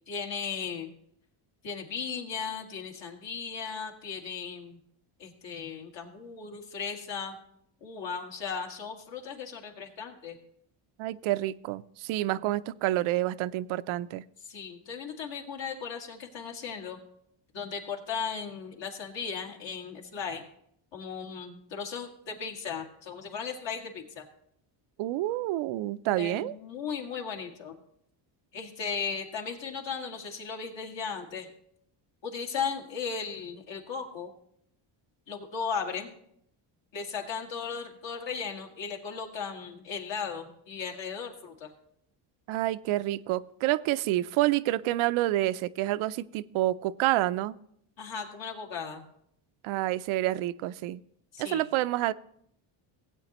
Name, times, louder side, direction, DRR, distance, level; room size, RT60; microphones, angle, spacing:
voice 1, 0.1-0.9 1.6-4.8 5.2-7.4 7.8-10.4 14.4-17.0 17.5-20.5 20.9-24.3 26.2-27.8 28.5-31.5 32.2-34.3 35.3-36.1 36.9-41.7 48.0-49.0 51.3-51.6, left 6 dB, 60° left, 2 dB, 2.0 m, -36 dB
voice 2, 11.0-14.2 25.0-26.6 42.5-47.5 49.6-51.0 51.4-52.1, right 15 dB, 75° right, 15 dB, 0.5 m, -28 dB
16.5 x 8.4 x 3.0 m, 0.71 s
cardioid pair, 100°, 49 cm